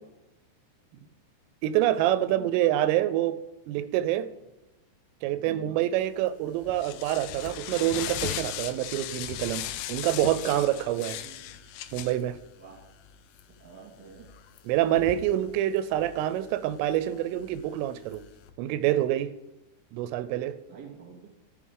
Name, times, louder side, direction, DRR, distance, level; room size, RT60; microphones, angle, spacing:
voice 1, 1.6-3.4 3.7-4.3 5.2-11.2 11.9-12.4 14.7-18.2 18.6-19.3 19.9-20.6, right 13 dB, 85° right, 14 dB, 3.1 m, -26 dB
voice 2, 2.3-2.6 5.3-6.0 11.0-11.6 12.6-12.8 13.6-14.3 20.7-21.3, right 7 dB, 35° right, 0 dB, 1.9 m, -48 dB
sound 1, 6.1-18.5, left 12 dB, 85° left, 3.0 m, -39 dB
14.5 x 5.5 x 3.7 m, 1.0 s
omnidirectional pair, 5.7 m